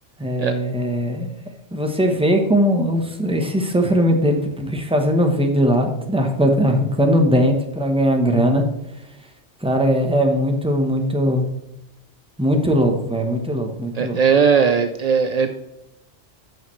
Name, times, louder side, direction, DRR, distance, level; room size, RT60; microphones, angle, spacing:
voice 1, 0.2-1.3 1.7-8.6 9.6-11.5 12.4-14.2, equal, 5° right, 3 dB, 0.8 m, -19 dB
voice 2, 14.0-15.5, right 6 dB, 75° right, 7 dB, 0.3 m, -18 dB
9.0 x 6.6 x 3.1 m, 0.83 s
omnidirectional pair, 1.2 m